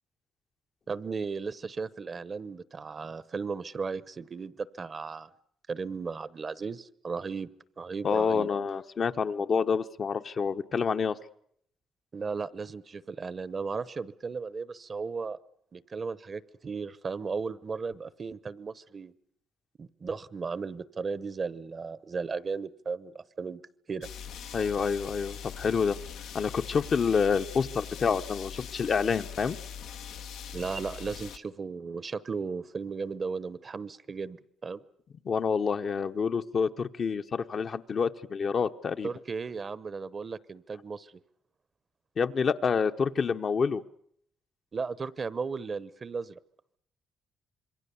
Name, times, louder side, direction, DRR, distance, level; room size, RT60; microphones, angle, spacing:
voice 1, 0.9-5.3 5.7-7.5 7.8-8.5 12.1-15.4 15.7-19.1 19.8-23.6 23.9-24.1 30.5-34.4 34.6-34.8 39.0-41.1 44.7-46.4, right 5 dB, 40° right, 18 dB, 0.9 m, -35 dB
voice 2, 8.0-11.2 24.5-26.0 26.3-29.6 35.2-39.1 42.2-43.8, left 6 dB, 50° left, 7 dB, 0.9 m, -28 dB
sound 1, 24.0-31.4, left 7 dB, 90° left, 1.1 m, -42 dB
26.5 x 22.5 x 7.0 m, 0.68 s
cardioid pair, 90°, 0 cm